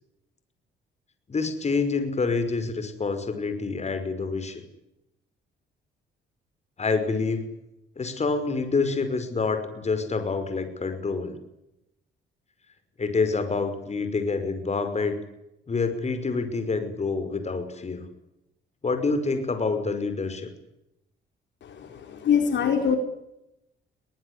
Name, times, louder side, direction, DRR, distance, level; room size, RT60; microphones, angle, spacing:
voice 1, 1.3-4.6 6.8-7.5 8.0-11.4 13.0-15.2 15.7-18.1 18.8-20.5, left 4 dB, 35° left, 9 dB, 5.6 m, -27 dB
voice 2, 21.6-23.0, left 7 dB, 65° left, 5 dB, 4.4 m, -24 dB
23.0 x 20.0 x 9.9 m, 0.86 s
cardioid pair, 90°, 20 cm